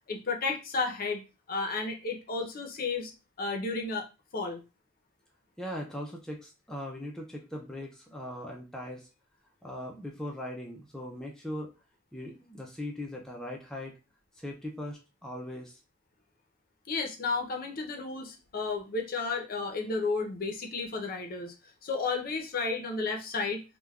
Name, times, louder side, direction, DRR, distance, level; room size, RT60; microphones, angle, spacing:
voice 1, 0.1-1.2 1.5-3.1 3.4-4.1 4.3-4.6 16.9-21.5 21.8-23.6, left 4 dB, 45° left, 2 dB, 0.6 m, -32 dB
voice 2, 5.6-9.1 9.6-11.7 12.1-13.9 14.4-15.8, left 1 dB, 5° left, -1 dB, 0.4 m, -39 dB
3.3 x 2.2 x 2.3 m, 0.29 s
head